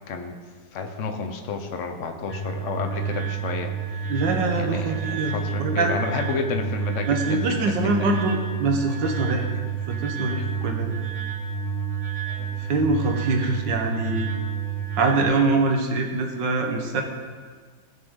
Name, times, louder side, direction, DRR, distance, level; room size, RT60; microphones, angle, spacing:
voice 1, 0.7-3.7 4.5-8.2 8.9-9.0 12.3-12.6, left 4 dB, 50° left, 5 dB, 1.1 m, -31 dB
sound 1, 2.3-15.2, right 6 dB, 25° left, 1.8 m, -29 dB
voice 2, 4.1-5.9 7.1-9.4 9.9-10.9 12.6-14.3 15.0-17.0, right 3 dB, 85° right, 3 dB, 1.7 m, -24 dB
16.5 x 6.1 x 3.7 m, 1.5 s
omnidirectional pair, 1.9 m